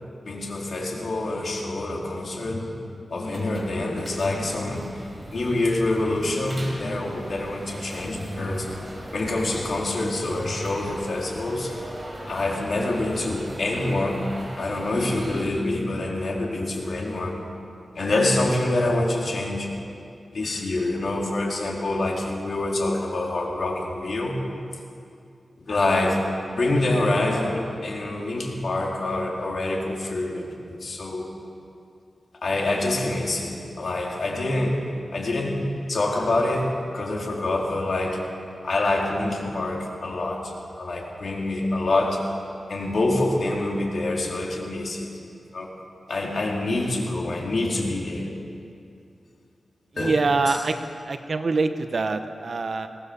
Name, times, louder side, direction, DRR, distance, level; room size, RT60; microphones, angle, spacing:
voice 1, 0.2-2.8 3.1-8.7 9.1-11.7 12.3-14.2 14.6-17.4 17.9-19.7 20.3-24.3 25.6-26.2 26.5-31.3 32.4-34.8 35.1-35.6 35.9-38.2 38.6-42.2 42.7-45.1 45.5-45.7 46.1-48.3 50.0-50.6, left 2 dB, 60° left, -1 dB, 4.0 m, -26 dB
sound 1, 3.2-15.4, equal, 20° right, 5.8 m, -39 dB
voice 2, 50.0-50.8 51.0-52.9, right 3 dB, 55° right, 8 dB, 1.3 m, -24 dB
22.0 x 18.5 x 7.2 m, 2.5 s
wide cardioid pair, 95°, 0 cm